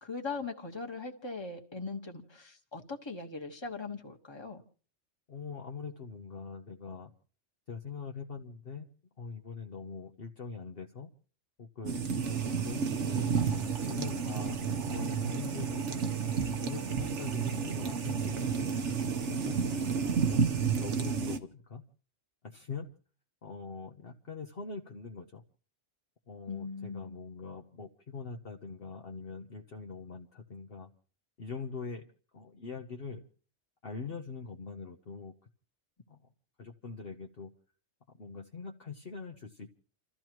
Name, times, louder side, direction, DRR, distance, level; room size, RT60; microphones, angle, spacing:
voice 1, 0.0-4.6 12.1-12.6 26.5-27.2, left 4 dB, 20° left, 1.6 m, -40 dB
voice 2, 5.3-7.1 7.7-8.9 9.2-11.1 11.6-12.0 12.6-13.4 13.8-14.6 14.9-15.8 16.4-18.7 19.3-20.4 20.7-21.8 22.4-22.9 23.4-25.4 26.3-30.9 31.4-32.0 32.3-33.2 33.8-35.3 36.1-36.2 36.6-37.5 38.2-39.7, left 5 dB, 55° left, 1.2 m, -43 dB
sound 1, 11.8-21.4, right 6 dB, 75° right, 1.4 m, -31 dB
30.0 x 14.0 x 3.1 m
omnidirectional pair, 1.2 m